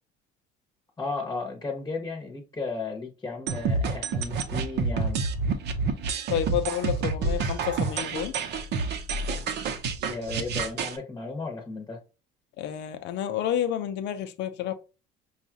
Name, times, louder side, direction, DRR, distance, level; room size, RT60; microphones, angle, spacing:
voice 1, 1.0-5.2 10.1-12.0, left 3 dB, 15° left, 0.9 m, -34 dB
sound 1, 3.5-11.0, right 4 dB, 55° right, 0.7 m, -28 dB
voice 2, 6.3-8.4 12.6-14.7, left 10 dB, 65° left, 0.6 m, -30 dB
5.2 x 2.4 x 2.8 m
cardioid pair, 125°, 20 cm